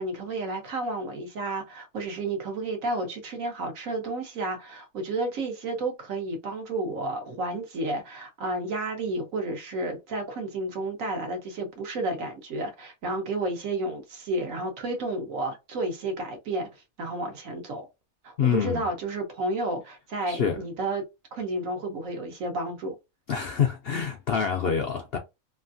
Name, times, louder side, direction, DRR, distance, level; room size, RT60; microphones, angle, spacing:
voice 1, 0.0-16.7 17.0-17.9 18.2-21.0 21.3-23.0, right 2 dB, 70° right, 1.3 m, -31 dB
voice 2, 18.4-18.9 20.3-20.6 23.3-25.2, left 7 dB, 65° left, 0.6 m, -26 dB
3.1 x 2.4 x 2.5 m
omnidirectional pair, 1.5 m